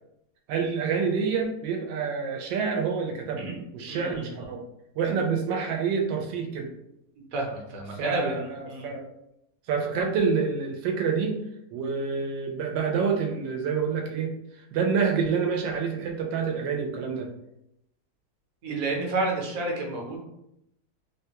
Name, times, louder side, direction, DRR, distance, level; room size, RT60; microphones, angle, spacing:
voice 1, 0.5-3.5 3.7-4.6 5.0-6.7 7.9-9.1 9.7-11.4 11.7-14.3 14.7-17.3, right 5 dB, 85° right, 2 dB, 1.3 m, -27 dB
voice 2, 3.9-4.4 7.3-8.9 18.6-20.2, right 2 dB, 60° right, -1 dB, 1.0 m, -30 dB
3.4 x 2.2 x 2.8 m, 0.81 s
omnidirectional pair, 1.9 m